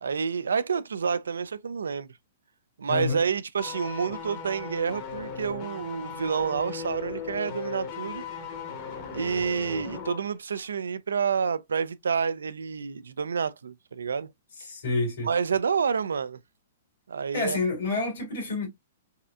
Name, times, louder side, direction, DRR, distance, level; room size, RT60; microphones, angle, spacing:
voice 1, 0.0-2.1 2.8-8.2 9.1-14.3 15.2-16.4 17.1-17.6, right 6 dB, 80° right, 0.3 m, -28 dB
voice 2, 2.9-3.2 14.6-15.3 17.3-18.7, left 3 dB, 65° left, 2.1 m, -28 dB
sound 1, 3.6-10.3 10.5-10.7, left 6 dB, 45° left, 1.1 m, -37 dB
4.1 x 2.4 x 2.3 m
hypercardioid pair, 120°, 0 cm